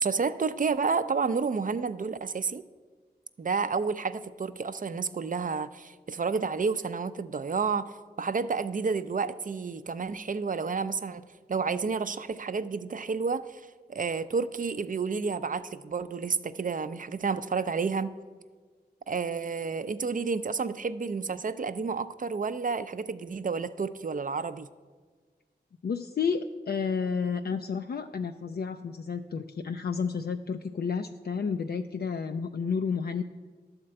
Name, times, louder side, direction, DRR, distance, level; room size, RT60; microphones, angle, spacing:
voice 1, 0.0-2.6 3.4-11.2 11.5-13.6 13.9-18.1 19.1-24.7, right 5 dB, 50° right, 13 dB, 0.5 m, -30 dB
voice 2, 25.8-33.2, left 5 dB, 65° left, 7 dB, 0.4 m, -31 dB
12.0 x 4.4 x 7.6 m, 1.5 s
wide cardioid pair, 60°, 18 cm